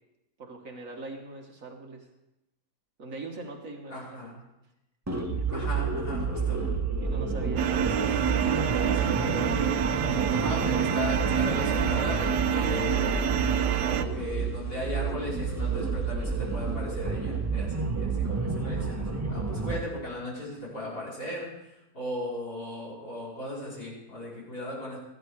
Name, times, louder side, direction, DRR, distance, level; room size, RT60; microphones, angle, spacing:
voice 1, 0.4-2.1 3.0-4.3 5.2-5.8 7.0-7.7, right 2 dB, 50° right, 2 dB, 1.8 m, -41 dB
voice 2, 3.9-4.4 5.5-6.6 7.6-8.2 8.7-9.9 10.3-13.6 13.9-25.0, left 1 dB, 65° left, -5 dB, 5.8 m, -37 dB
sound 1, 5.1-19.8, right 5 dB, 10° right, 0.9 m, -30 dB
sound 2, 7.6-14.0, right 8 dB, 75° right, 1.3 m, -27 dB
14.5 x 12.5 x 4.8 m, 0.90 s
omnidirectional pair, 1.8 m